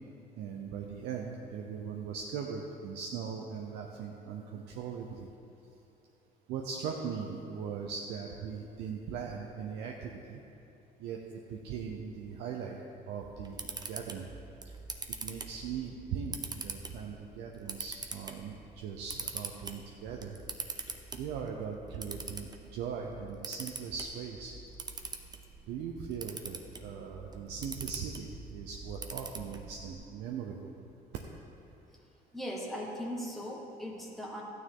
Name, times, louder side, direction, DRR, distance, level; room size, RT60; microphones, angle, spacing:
voice 1, 0.4-5.3 6.5-10.4 11.0-12.8 13.1-14.3 14.6-14.7 15.2-20.3 21.1-24.6 25.7-30.7, right 6 dB, 85° right, 0 dB, 0.8 m, -40 dB
Camera, 13.2-29.9, right 4 dB, 25° right, 0.8 m, -44 dB
voice 2, 32.3-34.4, equal, ahead, -3 dB, 1.4 m, -39 dB
13.5 x 9.4 x 3.8 m, 2.8 s
cardioid pair, 110°, 17 cm